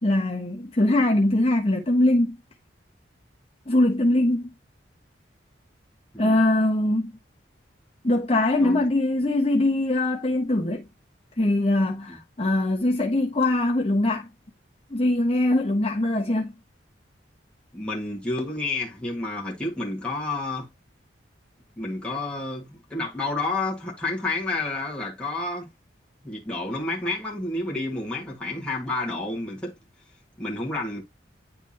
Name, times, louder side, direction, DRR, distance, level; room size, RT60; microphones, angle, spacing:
voice 1, 0.0-2.4 3.7-4.5 6.2-7.1 8.0-10.8 11.4-14.3 14.9-16.5, left 1 dB, 30° left, 1.1 m, -22 dB
voice 2, 17.7-20.7 21.8-25.7 26.2-29.7 30.4-31.0, left 2 dB, 5° left, 1.6 m, -30 dB
10.0 x 3.5 x 2.8 m
head